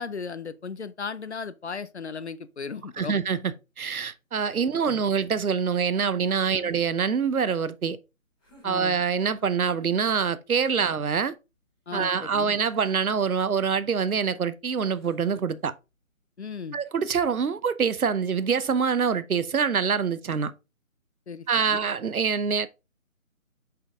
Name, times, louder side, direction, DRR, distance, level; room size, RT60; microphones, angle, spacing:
voice 1, 0.0-3.2 4.7-5.0 6.5-6.7 8.6-8.9 11.9-12.5 16.4-16.8 21.3-21.8, left 5 dB, 55° left, 0.6 m, -36 dB
voice 2, 3.0-8.0 8.6-11.4 11.9-15.7 16.7-20.5 21.5-22.7, right 6 dB, 90° right, 0.8 m, -25 dB
sound 1, 8.4-9.7 10.5-11.1 12.6-13.4 14.8-15.6, equal, 15° left, 2.2 m, -56 dB
5.9 x 5.2 x 3.6 m
figure-of-eight pair, 165°, 42 cm